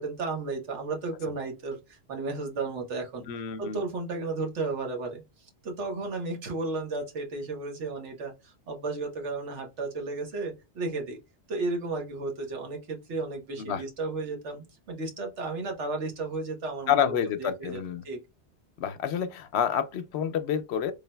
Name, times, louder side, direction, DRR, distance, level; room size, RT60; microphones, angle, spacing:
voice 1, 0.0-3.3 3.6-5.2 5.6-11.2 11.5-17.1 17.4-18.2, right 3 dB, 90° right, 1.4 m, -33 dB
voice 2, 3.3-3.8 13.6-13.8 16.9-18.0 18.8-20.9, left 8 dB, 70° left, 0.8 m, -28 dB
3.9 x 3.8 x 2.2 m
omnidirectional pair, 1.2 m